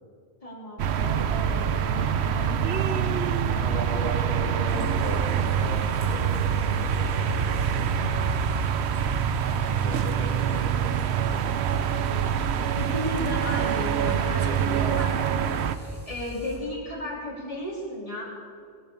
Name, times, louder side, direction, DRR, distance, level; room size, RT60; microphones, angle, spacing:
voice 1, 0.4-2.6 12.7-18.2, left 1 dB, 35° left, -4 dB, 3.7 m, -35 dB
sound 1, 0.8-15.8, right 7 dB, 90° right, 1.0 m, -25 dB
voice 2, 3.5-8.4 9.7-11.5, equal, 55° left, -6 dB, 2.7 m, -37 dB
sound 2, 4.7-16.6, equal, 30° right, 3.5 m, -43 dB
17.5 x 10.5 x 7.0 m, 2.3 s
omnidirectional pair, 1.1 m